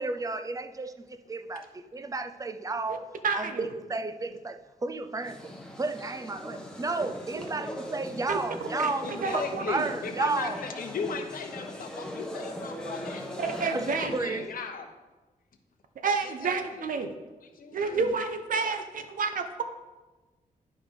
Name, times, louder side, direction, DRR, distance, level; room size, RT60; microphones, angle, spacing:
voice 1, 0.0-10.6 13.7-14.5, right 3 dB, 25° right, 10 dB, 0.4 m, -33 dB
voice 2, 3.2-3.7 8.3-8.4 8.8-8.9 9.2-9.9 13.4-14.3 16.0-17.1 17.7-19.6, right 5 dB, 70° right, 7 dB, 0.8 m, -29 dB
sound 1, 5.2-14.3, left 1 dB, 5° left, 1.0 m, -40 dB
voice 3, 9.0-13.3 13.8-14.9 16.2-16.9 17.5-18.1, left 5 dB, 80° left, 4 dB, 0.9 m, -37 dB
10.5 x 4.8 x 3.8 m, 1.2 s
wide cardioid pair, 125°, 14 cm